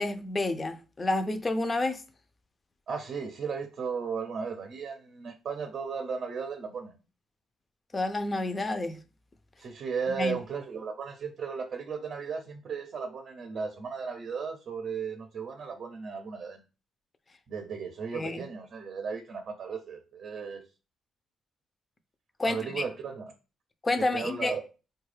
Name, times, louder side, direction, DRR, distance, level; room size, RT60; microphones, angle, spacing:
voice 1, 0.0-2.0 7.9-9.0 10.2-10.4 18.1-18.5 22.4-22.8 23.8-24.6, left 2 dB, 25° left, 0.5 m, -29 dB
voice 2, 2.9-7.0 9.6-16.6 17.5-20.6 22.4-23.3 24.0-24.6, right 5 dB, 55° right, 0.6 m, -35 dB
3.7 x 2.3 x 3.2 m
cardioid pair, 90°, 0 cm